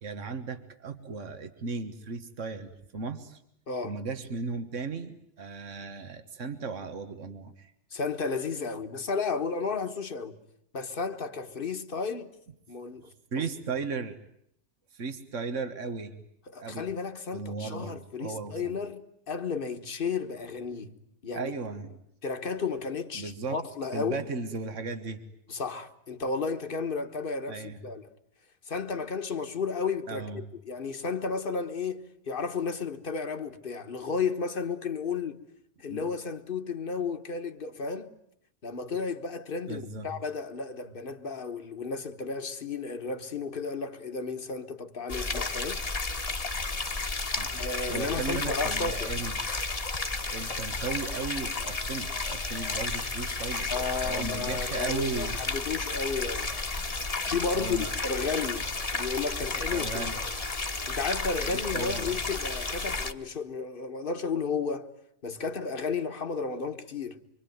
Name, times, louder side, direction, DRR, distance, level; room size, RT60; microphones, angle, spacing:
voice 1, 0.0-3.4 3.8-7.7 13.0-14.2 14.9-16.1 16.6-16.9 17.3-18.8 21.3-21.9 23.1-23.6 23.9-25.2 27.5-27.8 30.1-30.4 35.9-36.1 39.7-40.1 47.4-47.5 47.9-49.4 50.3-53.7 54.0-55.4 57.5-57.9 59.7-60.2 61.5-62.2, right 4 dB, 80° right, 1.9 m, -36 dB
voice 2, 3.7-4.0 7.9-10.4 10.7-12.3 12.7-13.1 13.4-13.5 16.5-20.9 21.2-21.5 22.2-24.3 25.5-28.1 28.7-35.4 35.8-38.1 38.6-45.8 47.5-49.1 53.7-56.6 57.1-60.1 60.9-64.9 65.2-67.2, left 4 dB, 45° left, 1.6 m, -33 dB
sound 1, 45.1-63.1, left 3 dB, 30° left, 1.4 m, -32 dB
25.5 x 25.0 x 9.4 m
omnidirectional pair, 1.3 m